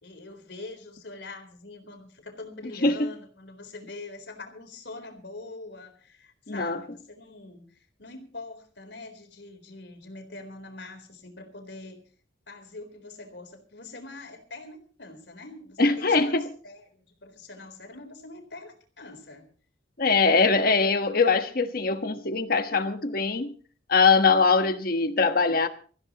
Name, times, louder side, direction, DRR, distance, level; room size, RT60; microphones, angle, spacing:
voice 1, 0.0-12.0 12.5-16.4 16.6-19.5, left 2 dB, 75° left, 3.9 m, -44 dB
voice 2, 6.5-6.8 15.8-16.5 20.0-23.5 23.9-25.7, left 4 dB, 55° left, 1.3 m, -22 dB
24.5 x 15.0 x 3.0 m
head